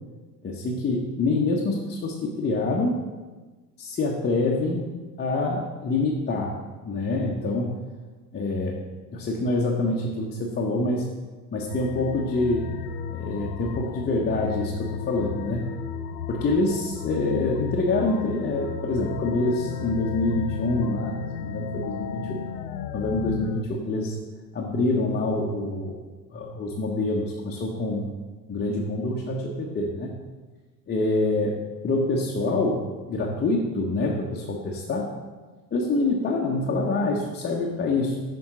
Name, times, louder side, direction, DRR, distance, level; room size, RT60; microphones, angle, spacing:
voice 1, 0.4-3.0 3.8-4.9 5.2-6.5 6.8-7.8 8.3-8.8 9.1-11.1 11.5-12.7 13.1-15.7 16.3-22.4 22.9-24.1 24.5-26.0 26.3-28.1 28.5-30.1 30.9-31.6 31.8-35.1 35.7-38.2, left 2 dB, 20° left, -2 dB, 0.9 m, -26 dB
sound 1, 11.7-23.6, left 7 dB, 65° left, 0.6 m, -33 dB
7.0 x 5.4 x 3.8 m, 1.3 s
figure-of-eight pair, 70°, 49 cm